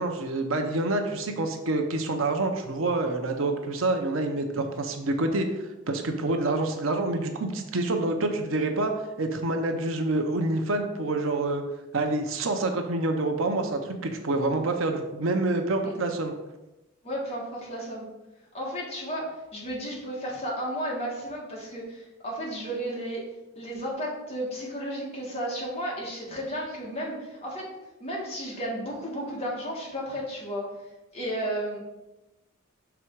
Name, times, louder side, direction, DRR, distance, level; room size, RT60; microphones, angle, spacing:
voice 1, 0.0-5.5 5.9-8.9 9.2-11.6 11.9-16.3, right 2 dB, 75° right, 5 dB, 0.7 m, -27 dB
voice 2, 17.0-18.0 18.5-23.3 23.5-27.7 28.0-30.6 31.1-31.8, equal, 30° left, -4 dB, 1.6 m, -33 dB
6.1 x 3.4 x 4.6 m, 1.0 s
head